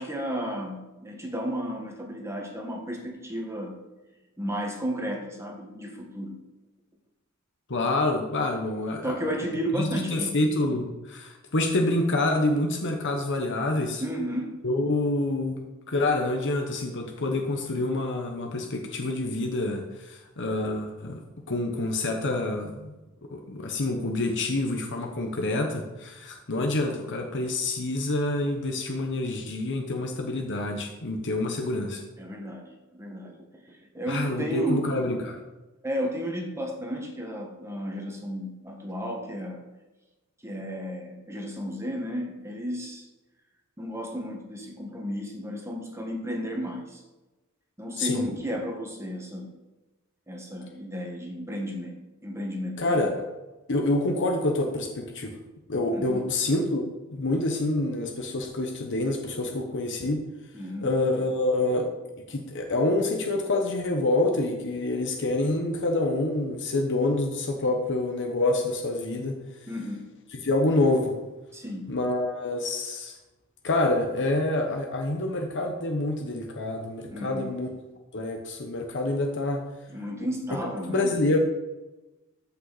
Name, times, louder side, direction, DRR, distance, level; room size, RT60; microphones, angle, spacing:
voice 1, 0.0-3.8 4.4-6.4 9.0-10.4 14.0-14.6 32.2-33.4 33.7-34.8 35.8-39.6 40.4-43.0 43.8-47.0 47.8-49.5 50.3-52.0 52.2-52.8 55.9-56.2 60.5-60.9 69.7-70.1 71.5-71.9 77.1-77.5 79.9-81.1, equal, 15° right, 1 dB, 1.6 m, -33 dB
voice 2, 7.7-9.3 9.7-14.0 14.6-15.6 15.9-21.2 21.5-22.9 23.3-32.0 34.1-35.4 48.0-48.2 52.8-53.2 53.7-55.4 55.7-56.8 57.1-60.2 60.8-61.9 62.3-69.4 70.3-71.2 71.9-73.1 73.6-77.7 78.1-79.6 80.9-81.4, left 2 dB, 55° left, 3 dB, 1.1 m, -27 dB
14.0 x 5.8 x 4.2 m, 1.1 s
head